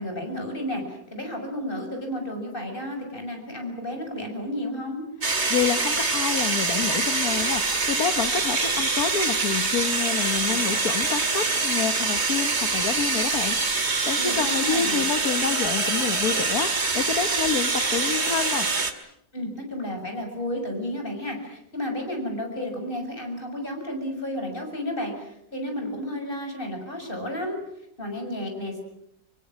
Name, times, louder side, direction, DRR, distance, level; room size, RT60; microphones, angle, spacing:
voice 1, 0.0-5.1 14.2-15.0 19.3-27.6 28.0-28.8, left 1 dB, 30° left, 3 dB, 6.9 m, -32 dB
voice 2, 5.2-18.7, left 7 dB, 65° left, 9 dB, 1.7 m, -28 dB
sound 1, 5.2-18.9, right 3 dB, 40° right, 2.4 m, -25 dB
26.0 x 24.0 x 7.5 m, 0.78 s
omnidirectional pair, 1.8 m